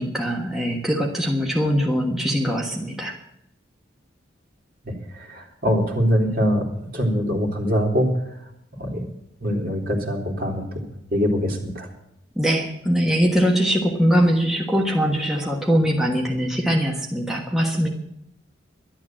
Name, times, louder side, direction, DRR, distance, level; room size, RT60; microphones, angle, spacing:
voice 1, 0.0-3.2 12.4-17.9, equal, ahead, -1 dB, 1.3 m, -22 dB
voice 2, 4.8-8.1 8.8-9.1 9.4-10.8 11.1-11.9, equal, 50° right, 0 dB, 3.2 m, -23 dB
11.5 x 11.5 x 7.5 m, 0.76 s
head